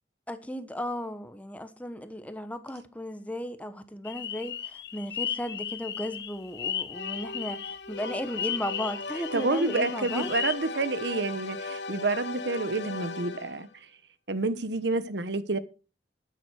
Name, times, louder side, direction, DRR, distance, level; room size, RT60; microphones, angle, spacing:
voice 1, 0.3-4.6 4.9-7.6 7.9-10.3, equal, 10° left, 1.0 m, -35 dB
sound 1, 4.0-10.5, left 9 dB, 65° left, 1.1 m, -35 dB
sound 2, 6.9-13.8, left 3 dB, 85° left, 1.3 m, -38 dB
voice 2, 9.3-13.7 14.3-15.6, right 3 dB, 80° right, 1.1 m, -29 dB
12.5 x 9.3 x 4.7 m
head